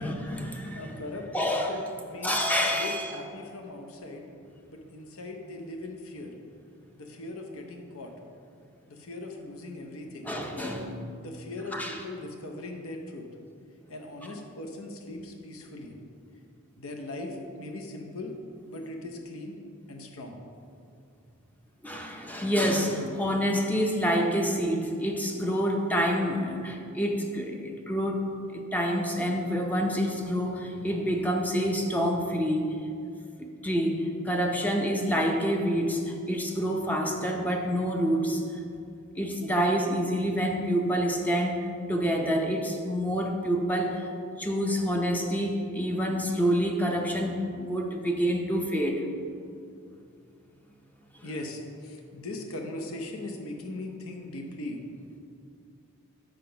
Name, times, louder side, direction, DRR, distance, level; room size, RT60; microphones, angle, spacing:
voice 1, 0.0-1.0 1.3-1.8 2.2-3.1 10.3-11.1 11.7-12.0 21.8-32.7 33.4-38.4 39.2-44.1 44.4-49.1 51.2-51.3, equal, 5° left, 2 dB, 0.5 m, -27 dB
voice 2, 0.7-2.4 2.7-4.3 4.7-6.3 7.0-8.1 8.9-10.3 11.2-13.3 13.9-16.0 16.7-18.4 18.7-19.6 19.9-20.4 51.2-54.8, left 2 dB, 70° left, 3 dB, 0.8 m, -39 dB
5.9 x 5.1 x 5.7 m, 2.4 s
head